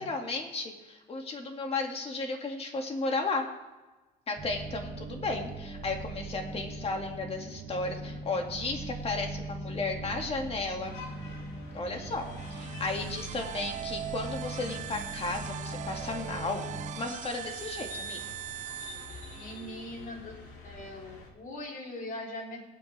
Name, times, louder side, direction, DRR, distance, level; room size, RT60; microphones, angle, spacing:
voice 1, 0.0-3.5 4.3-11.0 11.7-16.7 17.0-18.3, left 3 dB, 35° left, 3 dB, 2.1 m, -34 dB
sound 1, 4.4-16.9, right 2 dB, 30° right, 2.7 m, -40 dB
sound 2, 10.8-21.3, left 3 dB, 80° left, 2.5 m, -48 dB
sound 3, 12.1-19.8, right 11 dB, 45° right, 0.4 m, -41 dB
voice 2, 19.3-20.4 20.6-22.6, left 1 dB, 50° left, 0 dB, 3.3 m, -41 dB
23.0 x 9.0 x 3.4 m, 1.2 s
cardioid pair, 110°, 17 cm